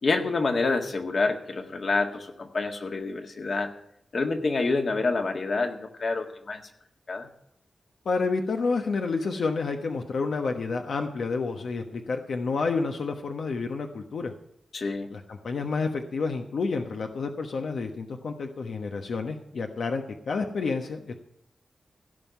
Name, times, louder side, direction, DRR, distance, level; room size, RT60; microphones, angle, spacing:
voice 1, 0.0-3.7 4.1-6.6 7.1-7.3 14.7-15.1, left 3 dB, 55° left, 5 dB, 1.8 m, -27 dB
voice 2, 8.0-14.3 15.1-21.1, left 4 dB, 85° left, 4 dB, 1.2 m, -29 dB
16.0 x 5.7 x 9.3 m, 0.73 s
wide cardioid pair, 130°, 0 cm